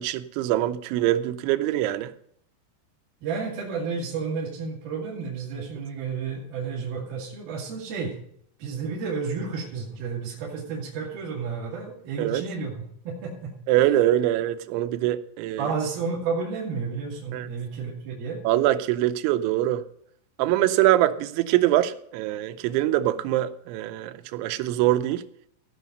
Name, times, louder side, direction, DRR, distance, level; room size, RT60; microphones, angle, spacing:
voice 1, 0.0-2.1 12.2-12.4 13.7-15.7 17.3-17.5 18.4-19.8 20.4-25.2, right 14 dB, 90° right, 3.1 m, -23 dB
voice 2, 3.2-8.2 8.6-13.5 15.6-18.4, right 5 dB, 60° right, 3.9 m, -31 dB
16.5 x 5.7 x 5.3 m
omnidirectional pair, 5.3 m